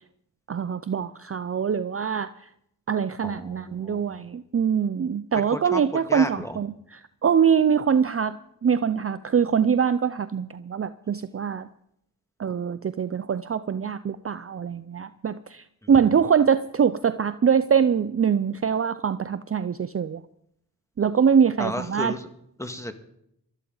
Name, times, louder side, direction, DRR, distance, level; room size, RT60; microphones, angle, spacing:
voice 1, 0.5-2.3 2.9-8.4 8.6-11.7 12.4-20.2 21.0-22.2, right 7 dB, 35° right, 13 dB, 0.6 m, -23 dB
voice 2, 3.2-4.2 5.5-6.6 21.6-22.3 22.6-22.9, left 1 dB, 5° left, 6 dB, 2.0 m, -33 dB
20.0 x 13.0 x 4.0 m, 0.75 s
cardioid pair, 50°, 39 cm